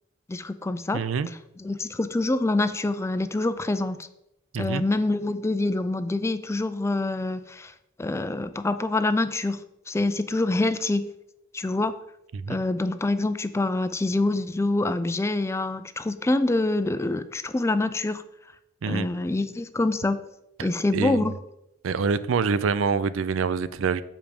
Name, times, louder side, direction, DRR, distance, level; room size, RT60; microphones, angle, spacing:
voice 1, 0.3-1.0 1.6-4.1 4.6-7.7 8.0-9.6 9.9-11.1 11.5-11.9 12.5-18.2 18.8-20.2 20.6-21.3, left 2 dB, 15° left, 11 dB, 0.4 m, -26 dB
voice 2, 0.9-1.3 4.5-4.8 12.3-12.6 18.8-19.1 20.6-21.3 21.8-24.0, right 5 dB, 70° right, 16 dB, 0.4 m, -26 dB
7.1 x 5.0 x 5.1 m, 0.82 s
head